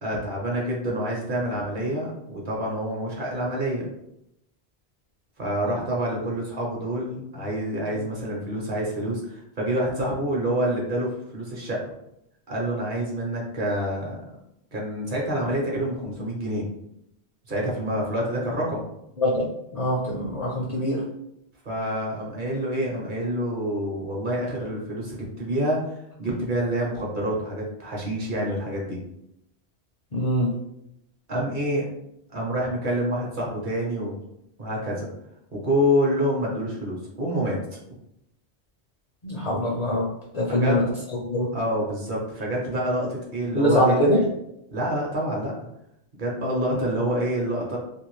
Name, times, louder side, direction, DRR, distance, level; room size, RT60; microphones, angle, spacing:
voice 1, 0.0-3.9 5.4-11.8 12.5-14.2 14.7-16.7 17.5-18.9 21.6-29.0 31.3-31.9 32.3-34.2 34.6-35.1 35.5-37.6 40.5-40.8 41.5-44.1 44.7-45.5 46.2-47.8, equal, 50° right, -3 dB, 0.9 m, -27 dB
voice 2, 19.2-21.0 30.1-30.5 39.2-40.1 40.3-40.8 41.3-41.5 43.5-44.2, equal, 50° left, -4 dB, 0.5 m, -23 dB
2.6 x 2.5 x 3.0 m, 0.80 s
omnidirectional pair, 1.1 m